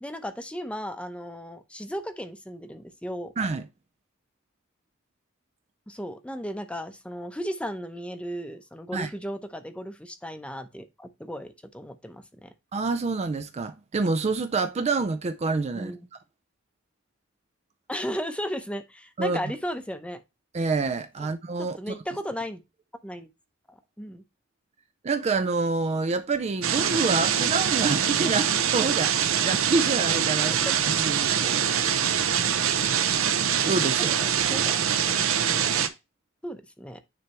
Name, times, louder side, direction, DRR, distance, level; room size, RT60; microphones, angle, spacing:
voice 1, 0.0-3.3 5.9-12.5 15.7-16.1 17.9-20.2 21.6-22.6 23.0-23.3 23.7-24.2 30.7-30.8 34.2-35.7 36.4-37.0, equal, 5° left, 0.7 m, -35 dB
voice 2, 3.4-3.7 8.9-9.1 12.7-15.9 19.2-19.4 20.5-22.0 25.0-31.6 33.6-34.1, right 3 dB, 30° right, 0.4 m, -27 dB
sound 1, 26.6-35.9, right 8 dB, 75° right, 0.7 m, -24 dB
9.6 x 3.3 x 2.9 m
head